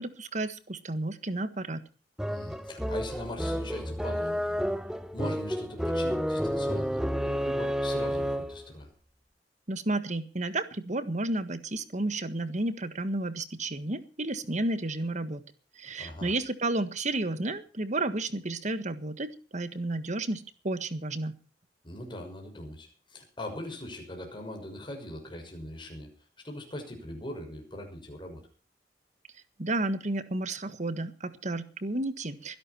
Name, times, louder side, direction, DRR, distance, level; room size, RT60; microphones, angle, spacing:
voice 1, 0.0-1.8 9.7-15.4 15.7-21.4 29.6-32.6, right 2 dB, 45° right, 11 dB, 1.5 m, -32 dB
sound 1, 2.2-8.7, equal, 5° right, 0.8 m, -30 dB
voice 2, 2.3-4.6 5.1-8.9 16.0-16.3 21.8-26.1 26.4-28.4, left 1 dB, 30° left, 2 dB, 6.1 m, -41 dB
23.0 x 11.5 x 4.5 m, 0.37 s
head